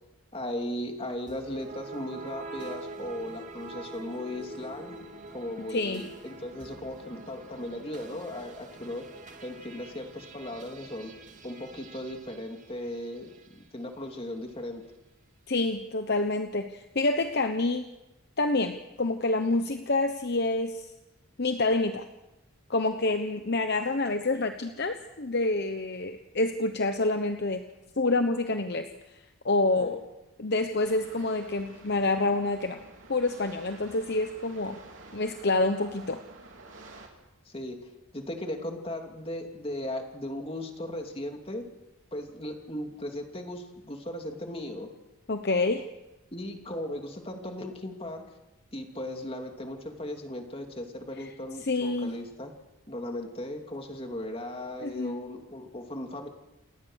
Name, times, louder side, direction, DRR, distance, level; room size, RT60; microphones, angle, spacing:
voice 1, 0.3-5.0 5.3-9.0 9.4-11.1 11.4-14.8 29.8-30.0 37.5-41.7 42.1-44.9 46.3-48.2 48.7-52.5 52.9-56.3, left 1 dB, 25° left, 3 dB, 2.8 m, -37 dB
sound 1, 1.3-13.6, right 3 dB, 35° right, 2.1 m, -45 dB
voice 2, 5.7-6.0 15.5-17.9 18.4-20.9 21.4-22.1 22.7-27.6 28.0-28.9 29.4-30.0 30.4-32.8 33.1-34.8 35.1-36.2 45.3-45.9 51.6-52.1 54.8-55.2, left 2 dB, 50° left, 7 dB, 1.0 m, -27 dB
sound 2, 30.8-37.1, right 2 dB, 60° right, 3.9 m, -50 dB
29.0 x 18.5 x 6.5 m, 1.0 s
head